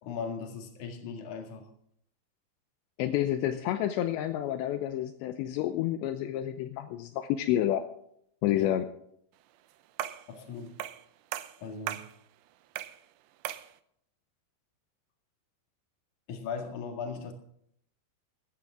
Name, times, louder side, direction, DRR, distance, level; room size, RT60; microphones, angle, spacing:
voice 1, 0.0-1.7 8.5-8.7 10.3-10.7 11.6-12.0 16.3-17.3, left 5 dB, 50° left, 4 dB, 2.8 m, -38 dB
voice 2, 3.0-7.8 8.4-8.9, left 12 dB, 80° left, 8 dB, 2.7 m, -29 dB
sound 1, 10.0-10.3 10.8-11.1 11.3-12.1 12.8-13.0 13.5-13.7, right 12 dB, 80° right, 2.6 m, -37 dB
15.0 x 14.5 x 3.6 m, 0.68 s
omnidirectional pair, 5.6 m